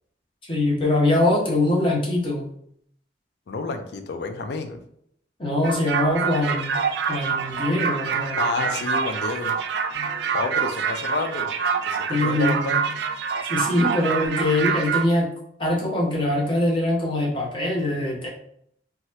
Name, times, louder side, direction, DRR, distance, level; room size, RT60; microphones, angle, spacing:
voice 1, 0.4-2.5 5.4-6.7 7.1-8.8 9.9-10.2 12.1-12.8 13.5-15.3 15.6-18.3, left 1 dB, 30° left, -3 dB, 0.8 m, -23 dB
voice 2, 3.5-4.8 8.4-9.5 10.3-11.5 11.9-12.8, left 3 dB, 65° left, 7 dB, 0.4 m, -30 dB
sound 1, 5.6-15.1, right 6 dB, 65° right, 0.3 m, -26 dB
2.8 x 2.3 x 3.0 m, 0.69 s
head